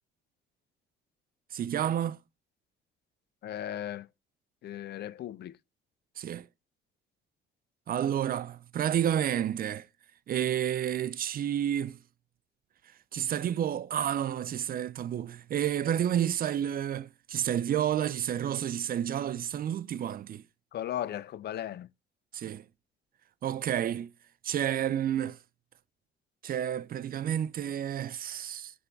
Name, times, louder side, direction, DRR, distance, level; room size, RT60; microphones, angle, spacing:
voice 1, 1.5-2.2 6.2-6.5 7.9-9.9 10.3-12.0 13.1-20.4 22.3-22.6 23.4-24.1 24.4-25.4 26.4-28.7, right 10 dB, 50° right, 0.4 m, -30 dB
voice 2, 3.4-4.1 4.6-5.6 20.7-21.9, left 11 dB, 55° left, 0.4 m, -36 dB
6.8 x 3.5 x 4.4 m
cardioid pair, 90°, 20 cm